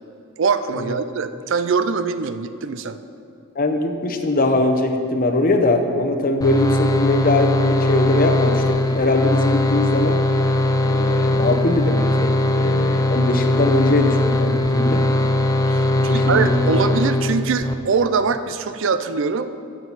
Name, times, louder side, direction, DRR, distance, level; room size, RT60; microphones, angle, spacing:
voice 1, 0.4-3.0 15.7-19.6, right 5 dB, 60° right, 11 dB, 0.4 m, -23 dB
voice 2, 3.5-10.2 10.8-15.1 15.9-17.0, left 2 dB, 40° left, 5 dB, 0.8 m, -21 dB
sound 1, 6.4-17.7, left 1 dB, 15° left, 0.4 m, -20 dB
14.0 x 7.6 x 4.1 m, 2.7 s
head